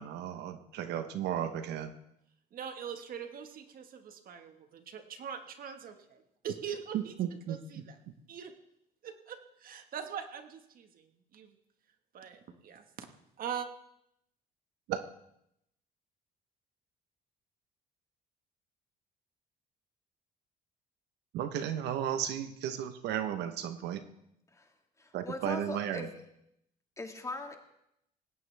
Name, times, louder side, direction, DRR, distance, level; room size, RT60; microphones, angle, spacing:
voice 1, 0.0-1.9 6.9-7.6 14.9-15.0 21.3-24.0 25.1-26.1, right 10 dB, 80° right, 9 dB, 1.1 m, -34 dB
voice 2, 2.5-7.1 7.5-8.0 8.3-8.5 9.0-11.6 12.1-13.1 13.4-13.7, right 8 dB, 60° right, 7 dB, 1.6 m, -42 dB
voice 3, 24.5-26.1 27.0-27.6, left 2 dB, 20° left, 4 dB, 2.0 m, -41 dB
19.0 x 16.5 x 3.5 m, 0.78 s
cardioid pair, 110°, 17 cm